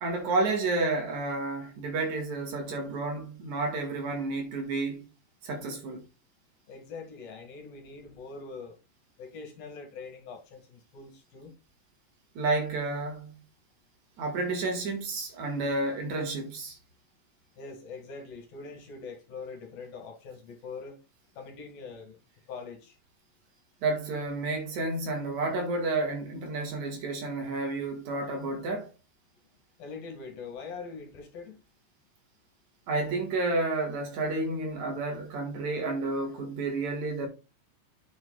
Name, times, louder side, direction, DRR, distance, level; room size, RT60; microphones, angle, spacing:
voice 1, 0.0-5.1 5.4-6.0 12.3-13.4 14.2-16.8 23.8-28.9 32.9-37.3, right 3 dB, 55° right, 2.4 m, -30 dB
voice 2, 6.7-8.8 9.2-11.5 17.6-21.0 21.4-22.2 22.5-23.0 29.8-31.6, left 4 dB, 60° left, 3.1 m, -43 dB
9.7 x 6.9 x 2.3 m
omnidirectional pair, 5.5 m